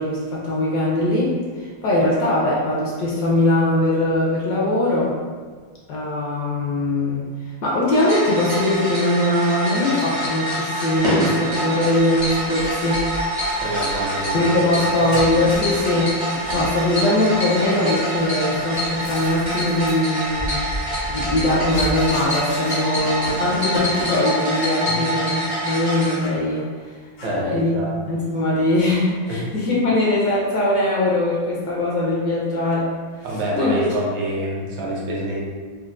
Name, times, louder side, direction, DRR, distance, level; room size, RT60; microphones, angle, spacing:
voice 1, 0.0-5.2 5.9-7.3 7.6-13.1 14.3-20.7 21.1-26.7 27.3-27.7 28.1-33.0 33.6-33.8, left 1 dB, 70° left, -5 dB, 1.1 m, -21 dB
sound 1, 7.9-26.2, equal, 35° right, 0.5 m, -26 dB
sound 2, 13.5-24.2 24.5-24.8 25.2-25.4 25.9-26.8 27.2-27.6, left 1 dB, 90° left, 1.6 m, -37 dB
voice 2, 13.6-14.5 15.0-15.1 24.9-25.1 27.2-28.0 29.3-29.4 33.2-35.4, right 1 dB, 75° right, -3 dB, 1.3 m, -27 dB
4.4 x 2.0 x 2.4 m, 1.6 s
omnidirectional pair, 2.1 m